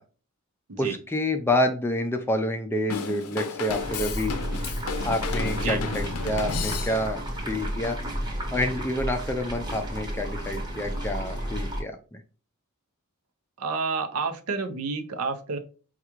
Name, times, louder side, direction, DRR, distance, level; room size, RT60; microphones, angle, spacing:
voice 1, 0.8-4.3 5.0-7.2 7.5-8.0 8.5-12.2, left 1 dB, 10° left, 6 dB, 0.4 m, -28 dB
Drum kit / Drum, 2.9-7.3, left 5 dB, 85° left, 0.5 m, -33 dB
sound 1, 3.8-11.8, equal, 20° right, 0.9 m, -32 dB
voice 2, 13.6-15.6, right 4 dB, 80° right, 7 dB, 0.6 m, -30 dB
4.7 x 2.4 x 2.9 m, 0.37 s
head